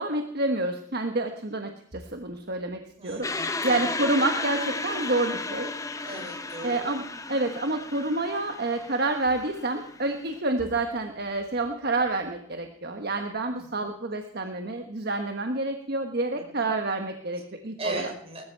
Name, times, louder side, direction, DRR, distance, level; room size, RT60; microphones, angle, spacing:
voice 1, 0.0-3.3 3.6-5.7 6.6-18.1, right 2 dB, 50° right, 5 dB, 1.2 m, -28 dB
voice 2, 3.0-3.9 6.0-6.8 13.5-13.8 16.4-16.7 17.8-18.4, right 2 dB, 30° right, 1 dB, 5.8 m, -38 dB
sound 1, 3.2-10.3, left 3 dB, 15° left, 0.9 m, -34 dB
20.0 x 13.5 x 4.6 m, 0.76 s
head